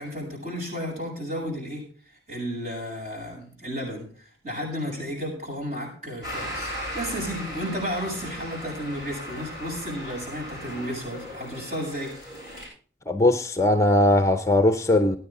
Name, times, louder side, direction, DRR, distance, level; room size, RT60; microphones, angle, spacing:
voice 1, 0.0-1.8 2.3-12.4, equal, 40° right, 8.0 m, -33 dB
sound 1, 6.2-12.7, equal, 20° right, 6.0 m, -37 dB
voice 2, 13.1-15.2, left 1 dB, 15° left, 0.7 m, -20 dB
19.0 x 9.7 x 3.8 m
head